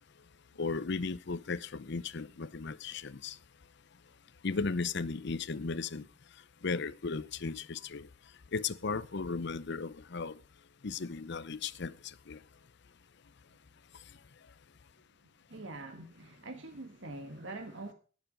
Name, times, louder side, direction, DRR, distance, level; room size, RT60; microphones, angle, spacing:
voice 1, 0.6-3.4 4.4-6.0 6.6-8.1 8.5-10.4 10.8-11.9 12.3-12.4, left 4 dB, 65° left, 0.7 m, -35 dB
voice 2, 15.5-17.9, right 2 dB, 75° right, 1.7 m, -44 dB
17.5 x 7.1 x 5.2 m
head